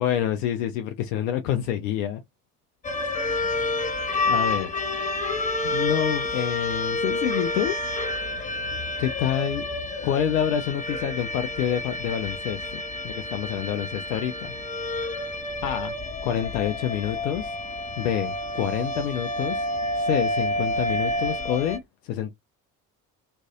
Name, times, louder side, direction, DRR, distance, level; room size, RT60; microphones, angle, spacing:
voice 1, 0.0-2.2 4.3-4.7 5.6-7.7 9.0-9.6 10.0-14.5 15.6-15.9 16.2-17.5 18.0-19.7 20.0-22.3, left 10 dB, 65° left, 0.5 m, -27 dB
sound 1, 2.8-21.8, left 2 dB, 15° left, 0.5 m, -29 dB
2.5 x 2.3 x 2.3 m
figure-of-eight pair, 50°, 49 cm